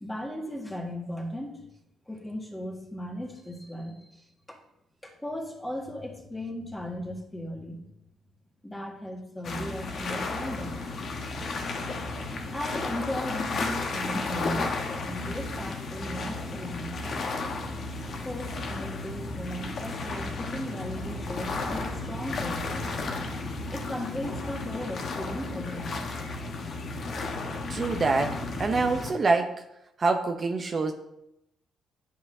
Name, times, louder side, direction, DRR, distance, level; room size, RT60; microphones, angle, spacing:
voice 1, 0.0-1.6 2.1-4.1 4.5-4.6 5.0-7.8 8.6-10.9 12.5-17.0 18.2-22.9 23.3-26.0, equal, 10° left, 1 dB, 1.6 m, -37 dB
sound 1, 9.4-29.1, left 3 dB, 55° left, 1.1 m, -33 dB
voice 2, 27.7-29.6 30.0-30.9, right 3 dB, 40° right, 5 dB, 0.6 m, -26 dB
9.6 x 5.6 x 2.7 m, 0.84 s
cardioid pair, 90°, 0 cm